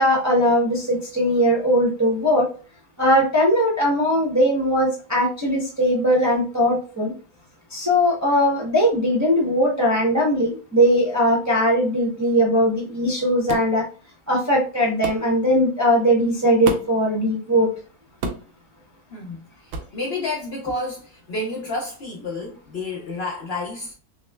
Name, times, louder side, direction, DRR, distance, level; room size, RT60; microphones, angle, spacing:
voice 1, 0.0-2.5 3.0-7.1 7.7-13.8 14.3-17.7, equal, 15° right, 0.6 m, -19 dB
sound 1, 13.5-13.7 15.0-15.3 16.6-17.0 18.2-18.5 19.7-19.9, right 3 dB, 65° right, 0.9 m, -29 dB
voice 2, 19.1-23.9, left 2 dB, 55° left, 0.8 m, -30 dB
6.0 x 2.1 x 2.2 m
omnidirectional pair, 1.6 m